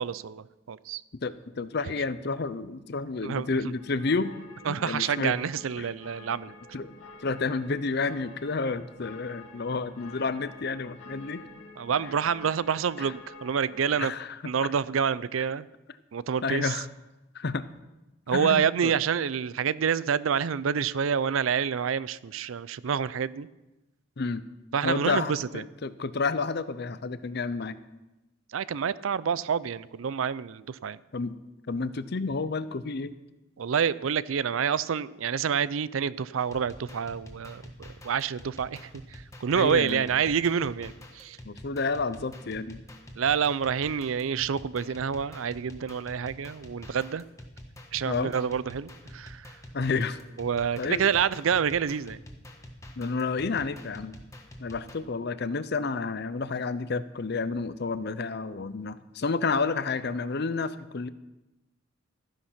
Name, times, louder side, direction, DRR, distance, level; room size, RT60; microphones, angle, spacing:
voice 1, 0.0-1.0 3.2-3.6 4.7-6.5 11.8-14.1 14.4-15.7 16.1-16.8 18.3-23.5 24.7-25.7 28.5-31.0 33.6-41.4 43.2-47.2 47.9-49.6 50.4-52.2, right 7 dB, 85° right, 18 dB, 0.5 m, -28 dB
voice 2, 1.1-4.3 4.7-5.3 5.8-5.9 6.7-6.9 7.2-11.4 14.0-14.3 16.4-16.9 17.3-17.6 18.3-18.9 24.2-24.4 24.8-27.8 31.1-31.3 31.7-33.1 39.6-40.1 41.4-42.8 48.0-48.3 49.7-50.2 50.8-51.0 53.0-54.2 54.6-61.1, left 4 dB, 55° left, 14 dB, 0.6 m, -30 dB
sound 1, 3.8-14.0, left 3 dB, 90° left, 2.1 m, -49 dB
sound 2, 36.4-55.0, equal, 15° left, 1.3 m, -47 dB
13.5 x 10.0 x 5.8 m, 1.0 s
head